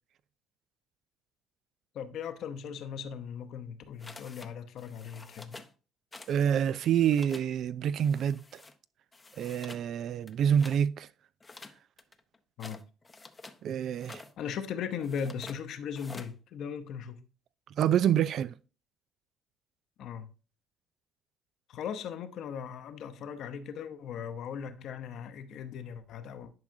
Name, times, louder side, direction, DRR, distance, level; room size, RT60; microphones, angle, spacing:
voice 1, 1.9-5.6 12.6-12.9 14.4-17.2 20.0-20.3 21.7-26.5, left 7 dB, 65° left, 0.9 m, -38 dB
sound 1, 4.0-4.5 4.8-5.7 6.1-6.5 6.7-7.5 8.0-8.7 9.1-9.9 10.2-10.8 11.4-13.6 13.9-14.3 15.0-15.6 15.9-16.3, left 3 dB, 20° left, 0.7 m, -49 dB
voice 2, 6.3-8.6 9.4-11.1 13.6-14.2 17.8-18.5, right 9 dB, 60° right, 0.4 m, -27 dB
10.5 x 4.9 x 2.7 m
cardioid pair, 95°, 0 cm